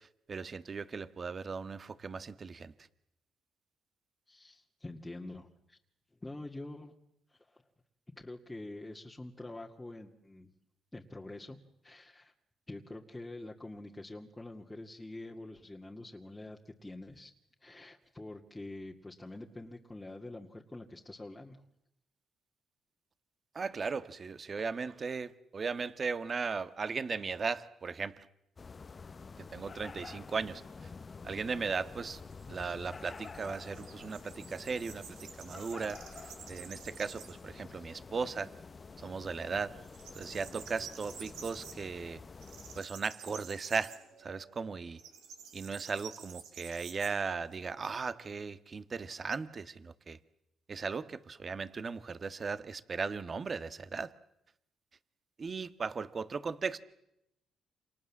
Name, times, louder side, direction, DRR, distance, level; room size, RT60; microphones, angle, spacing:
voice 1, 0.3-2.7 23.6-28.3 29.4-30.6 31.2-32.2 32.5-35.1 35.4-36.0 36.5-38.5 39.0-39.7 40.2-42.2 42.8-45.0 45.5-50.2 50.7-54.1 55.4-56.8, right 5 dB, 40° right, 13 dB, 1.7 m, -37 dB
voice 2, 4.3-5.8 6.2-6.9 7.3-7.6 8.1-10.5 10.9-12.3 12.7-17.3 17.6-21.6, left 2 dB, 15° left, 0 dB, 2.2 m, -46 dB
sound 1, 28.6-42.8, left 4 dB, 35° left, 1.2 m, -49 dB
sound 2, 32.1-37.5 37.9-38.0 38.4-39.2 39.4-47.9, right 7 dB, 85° right, 4.9 m, -51 dB
29.5 x 27.0 x 7.4 m, 0.82 s
cardioid pair, 90°, 0 cm